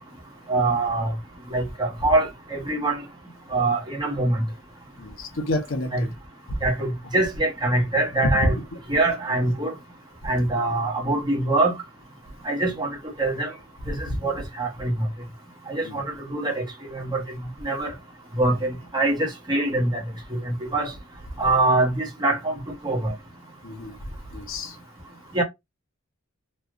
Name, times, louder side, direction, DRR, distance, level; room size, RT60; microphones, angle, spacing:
voice 1, 0.5-1.1 1.5-3.0 3.5-4.4 5.9-6.0 6.6-8.6 8.9-9.7 10.2-11.7 12.4-12.9 13.2-13.5 13.9-14.9 15.7-16.6 16.9-17.2 17.6-17.9 18.3-20.0 20.4-20.9 21.4-22.6 22.8-23.1 25.3-25.4, right 2 dB, 20° right, 1.0 m, -24 dB
voice 2, 5.0-6.1 6.5-6.6 8.2-8.8 14.1-14.2 15.8-16.0 23.6-23.9 24.3-24.8, left 1 dB, 65° left, 0.7 m, -27 dB
3.2 x 2.4 x 2.5 m
head